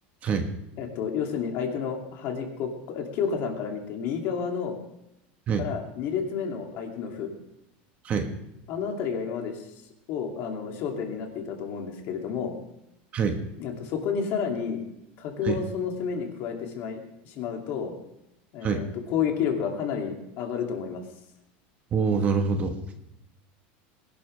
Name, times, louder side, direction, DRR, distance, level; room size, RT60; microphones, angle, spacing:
voice 1, 0.8-4.8 5.6-7.3 8.7-9.6 10.1-12.5 13.6-14.8 15.2-17.9 18.5-21.0, left 7 dB, 45° left, 2 dB, 2.6 m, -30 dB
voice 2, 21.9-22.7, right 5 dB, 25° right, 5 dB, 1.3 m, -25 dB
21.0 x 12.0 x 3.3 m, 0.82 s
supercardioid pair, 165°, 5 cm